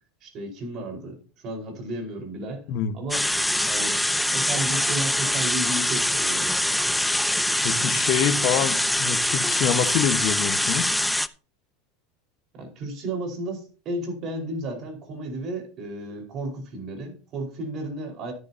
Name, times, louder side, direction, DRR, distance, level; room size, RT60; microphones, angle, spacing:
voice 1, 0.2-2.6 2.9-3.3 3.6-4.0 4.3-7.0 12.5-18.3, right 2 dB, 45° right, 4.9 m, -33 dB
sound 1, 3.1-11.3, left 1 dB, 5° left, 0.6 m, -24 dB
voice 2, 7.6-11.0, left 9 dB, 60° left, 1.4 m, -26 dB
13.0 x 10.5 x 2.9 m
supercardioid pair, 105°, 0 cm